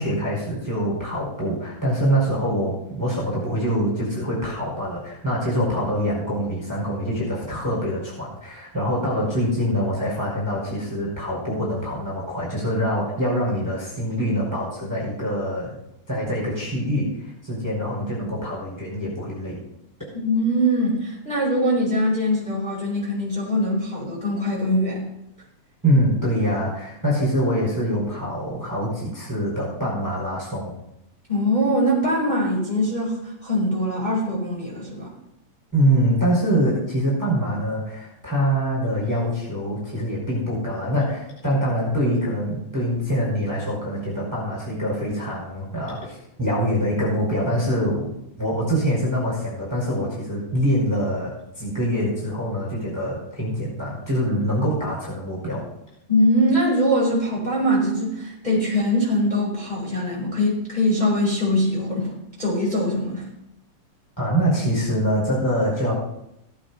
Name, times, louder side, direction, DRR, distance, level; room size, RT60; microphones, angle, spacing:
voice 1, 0.0-15.7 16.1-19.6 25.8-30.7 35.7-48.1 48.4-55.6 64.2-65.9, equal, 5° right, -5 dB, 4.4 m, -24 dB
voice 2, 20.1-25.0 31.3-33.2 33.4-35.1 56.1-62.1 62.4-63.2, equal, 10° left, -5 dB, 4.5 m, -22 dB
17.0 x 8.7 x 4.1 m, 0.82 s
omnidirectional pair, 4.0 m